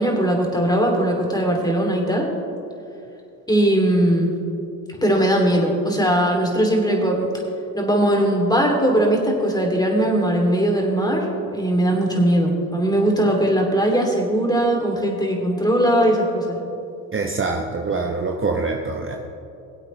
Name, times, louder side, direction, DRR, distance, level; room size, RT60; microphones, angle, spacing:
voice 1, 0.0-2.3 3.5-4.4 5.0-7.3 7.7-16.6, right 1 dB, 10° left, 0 dB, 2.7 m, -19 dB
voice 2, 17.1-19.2, right 3 dB, 30° right, 2 dB, 0.9 m, -24 dB
21.0 x 8.0 x 3.2 m, 2.7 s
supercardioid pair, 65°, 44 cm